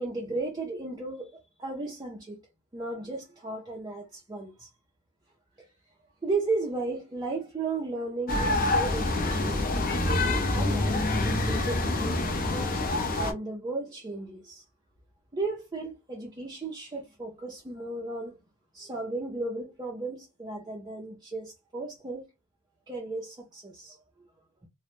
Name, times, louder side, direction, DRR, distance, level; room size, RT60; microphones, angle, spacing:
voice 1, 0.0-2.4 2.7-4.7 6.2-9.6 10.3-12.8 13.2-14.6 15.3-18.4 18.7-22.3 22.9-24.0, right 3 dB, 20° right, 0.4 m, -35 dB
sound 1, 8.3-13.3, left 2 dB, 40° left, 0.5 m, -26 dB
2.1 x 2.0 x 3.0 m
head